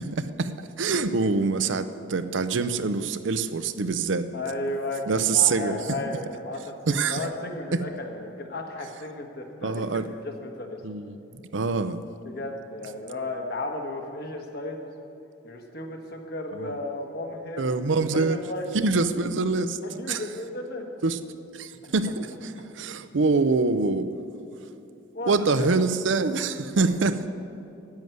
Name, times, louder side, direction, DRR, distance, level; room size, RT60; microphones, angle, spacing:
voice 1, 0.0-4.3 5.1-5.8 6.9-7.2 7.7-7.8 9.6-10.1 10.8-12.0 16.5-16.7 17.6-18.4 18.7-19.8 20.1-20.2 21.0-21.2 21.5-24.1 25.3-27.3, right 4 dB, 75° right, 11 dB, 0.6 m, -25 dB
voice 2, 4.3-10.8 12.2-14.9 15.4-17.7 18.1-18.7 19.8-20.9 21.8-21.9 25.1-25.7 26.8-26.9, left 2 dB, 55° left, 2 dB, 1.4 m, -34 dB
10.5 x 8.0 x 9.3 m, 2.7 s
head